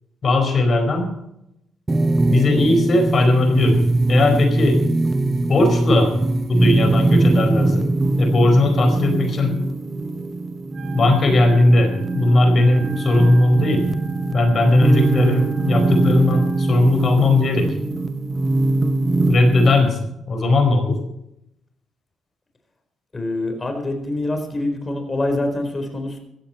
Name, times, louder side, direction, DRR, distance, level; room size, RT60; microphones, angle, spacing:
voice 1, 0.2-1.1 2.3-4.8 5.5-6.1 6.5-7.9 8.2-9.6 10.9-13.8 14.3-17.7 19.3-21.0, left 2 dB, 45° left, 5 dB, 4.8 m, -18 dB
sound 1, 1.9-19.9, right 2 dB, 20° right, 0.9 m, -21 dB
Wind instrument woodwind instrument, 10.7-16.9, right 2 dB, 50° right, 3.7 m, -43 dB
voice 2, 23.1-26.2, left 2 dB, 25° left, 5 dB, 4.5 m, -25 dB
16.0 x 14.5 x 4.5 m, 0.82 s
cardioid pair, 90°, 0 cm